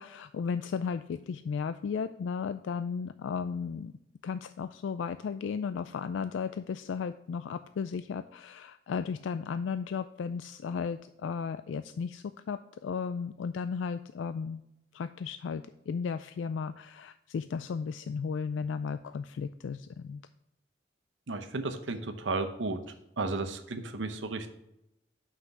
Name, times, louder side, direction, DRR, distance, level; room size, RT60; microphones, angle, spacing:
voice 1, 0.0-3.9 4.2-14.6 14.9-20.2, left 6 dB, 90° left, 11 dB, 0.3 m, -35 dB
voice 2, 21.3-22.8 23.2-24.5, right 3 dB, 90° right, 7 dB, 0.8 m, -33 dB
5.9 x 5.8 x 6.6 m, 0.83 s
head